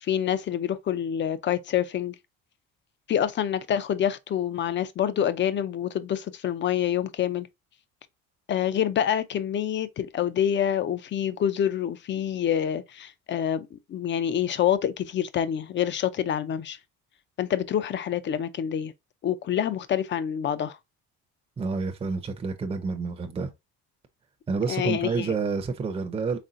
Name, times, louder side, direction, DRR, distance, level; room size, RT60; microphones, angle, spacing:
voice 1, 0.0-2.2 3.1-7.5 8.5-16.8 17.4-18.9 19.2-20.8 24.7-25.3, left 9 dB, 35° left, 0.5 m, -27 dB
voice 2, 21.6-23.5 24.5-26.4, right 4 dB, 20° right, 0.6 m, -29 dB
4.1 x 3.6 x 2.4 m
cardioid pair, 115°, 31 cm